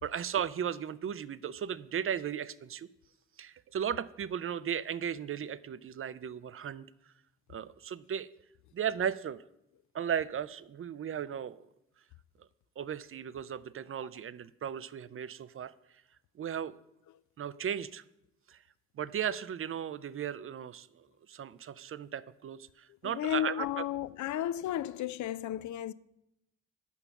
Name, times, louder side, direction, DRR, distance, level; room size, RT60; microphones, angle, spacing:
voice 1, 0.0-2.9 3.4-6.9 7.5-8.3 8.7-9.4 9.9-11.6 12.4-12.5 12.8-15.7 16.4-16.8 17.4-18.0 18.5-18.6 19.0-23.9 24.3-24.4, right 8 dB, 40° right, 0.5 m, -36 dB
voice 2, 23.0-25.9, left 11 dB, 65° left, 0.5 m, -33 dB
7.0 x 5.7 x 6.9 m
hypercardioid pair, 45°, 33 cm